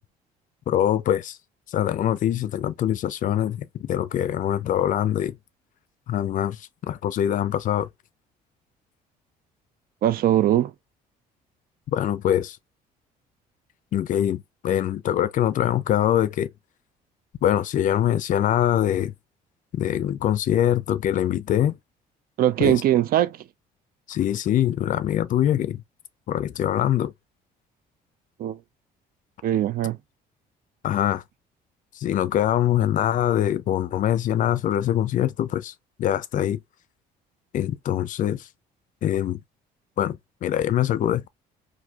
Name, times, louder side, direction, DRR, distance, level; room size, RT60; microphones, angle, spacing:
voice 1, 0.7-1.4 1.7-5.4 6.1-7.9 11.9-12.6 13.9-16.5 17.4-19.1 19.7-21.8 22.6-22.8 24.1-25.8 26.3-27.1 30.8-31.2 31.9-35.7 36.0-36.6 37.5-38.5 39.0-39.4 40.0-41.3, left 11 dB, 50° left, 0.4 m, -23 dB
voice 2, 10.0-10.7 22.4-23.4 28.4-28.6 29.4-30.0, right 12 dB, 60° right, 0.5 m, -21 dB
4.3 x 2.6 x 2.3 m
cardioid pair, 110°, 17 cm